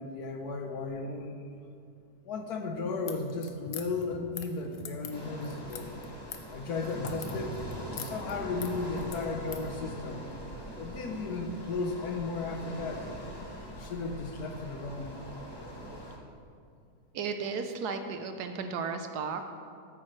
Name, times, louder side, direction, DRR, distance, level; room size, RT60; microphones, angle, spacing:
voice 1, 0.0-1.3 2.2-5.9 6.5-7.6 7.9-10.2 10.8-13.1 13.7-15.1, left 3 dB, 70° left, 5 dB, 1.3 m, -35 dB
sound 1, 3.0-9.7, left 8 dB, 90° left, 1.4 m, -45 dB
sound 2, 3.7-5.7 6.0-8.0 9.0-9.9 10.6-10.7, left 2 dB, 45° left, 0.6 m, -50 dB
sound 3, 5.1-16.2, equal, 15° left, 1.0 m, -42 dB
voice 2, 17.1-19.4, right 5 dB, 75° right, 7 dB, 1.2 m, -34 dB
14.0 x 8.6 x 3.2 m, 2.3 s
omnidirectional pair, 1.8 m